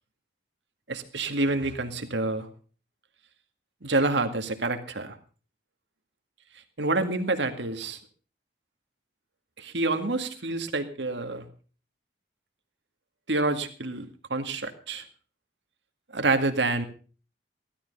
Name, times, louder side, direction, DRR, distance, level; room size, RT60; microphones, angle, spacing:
voice 1, 0.9-2.5 3.8-5.2 6.8-8.0 9.6-11.5 13.3-15.0 16.1-16.8, right 2 dB, 85° right, 7 dB, 2.1 m, -27 dB
16.5 x 13.0 x 5.4 m, 0.39 s
head